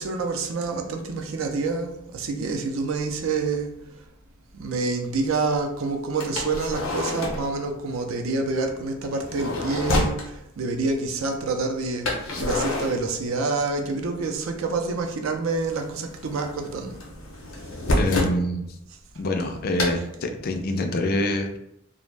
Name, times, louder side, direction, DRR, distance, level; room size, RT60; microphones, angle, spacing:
voice 1, 0.0-3.7 4.5-17.0, right 3 dB, 75° right, 4 dB, 0.4 m, -27 dB
sound 1, 3.9-4.0 6.2-7.5 9.0-10.3 12.0-13.7 14.0-14.8 15.1-18.4 19.8-20.0, left 1 dB, 80° left, 0.7 m, -28 dB
voice 2, 18.0-18.7 19.2-21.6, left 1 dB, 50° left, 5 dB, 0.4 m, -26 dB
2.4 x 2.1 x 3.2 m, 0.82 s
head